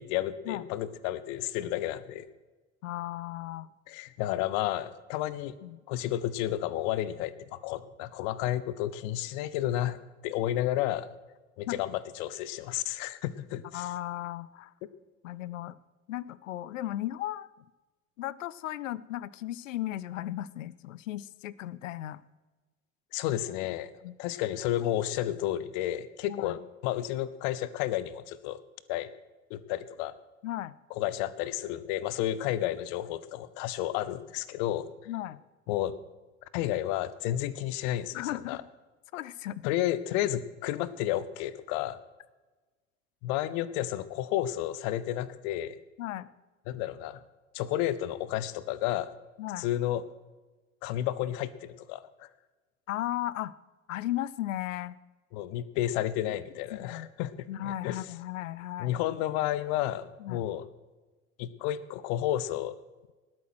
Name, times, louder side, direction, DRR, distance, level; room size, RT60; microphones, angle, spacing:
voice 1, 0.0-2.3 3.9-5.6 5.9-10.0 10.2-11.1 11.6-13.9 23.1-23.9 24.2-28.6 28.9-29.1 29.5-30.1 30.9-34.9 35.7-36.0 36.5-38.2 38.5-38.6 39.6-42.0 43.2-45.8 46.7-47.2 47.5-49.1 49.6-50.0 50.8-52.3 55.3-58.0 58.8-60.6 61.4-62.8, left 13 dB, 55° left, 17 dB, 1.0 m, -31 dB
voice 2, 2.8-3.7 5.6-5.8 11.7-11.8 13.7-14.7 15.2-15.8 16.1-17.5 18.2-22.2 24.0-24.2 26.3-26.6 30.4-30.8 35.1-35.4 38.1-38.6 39.1-39.7 46.0-46.3 49.4-49.7 52.9-53.5 53.9-55.0 56.7-57.1 57.5-58.9 60.2-60.4, left 14 dB, 75° left, 21 dB, 0.6 m, -36 dB
19.5 x 8.8 x 6.1 m, 1.2 s
figure-of-eight pair, 70°, 39 cm